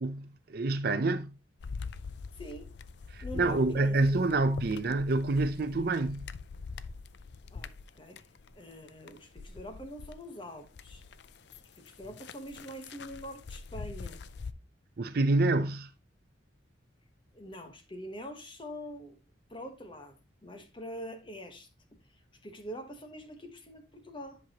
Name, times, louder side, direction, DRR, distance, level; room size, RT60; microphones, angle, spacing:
voice 1, 0.0-1.3 3.1-6.3 15.0-15.9, right 2 dB, 50° right, 0.5 m, -27 dB
sound 1, 1.6-10.2 10.5-14.5, left 4 dB, 60° left, 0.4 m, -44 dB
voice 2, 2.3-2.7 3.2-4.4 7.5-8.3 8.5-11.1 11.8-14.2 17.3-19.2 19.5-24.4, equal, 25° left, 1.0 m, -44 dB
10.5 x 5.4 x 2.9 m
head